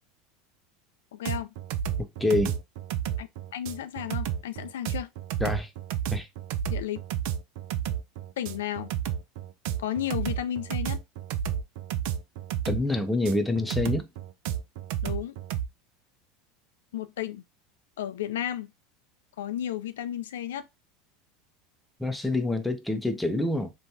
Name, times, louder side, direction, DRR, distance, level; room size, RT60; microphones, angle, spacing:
voice 1, 1.1-1.5 3.2-5.1 6.7-7.0 8.4-8.9 9.8-11.0 15.0-15.3 16.9-17.4 18.0-18.7 19.4-20.7, left 11 dB, 90° left, 0.3 m, -33 dB
sound 1, 1.2-15.7, right 10 dB, 65° right, 0.4 m, -31 dB
voice 2, 2.0-2.6 5.4-5.7 6.1-6.3 12.7-14.1 22.0-23.7, left 2 dB, 5° left, 0.5 m, -27 dB
3.1 x 2.2 x 2.6 m
supercardioid pair, 110°, 0 cm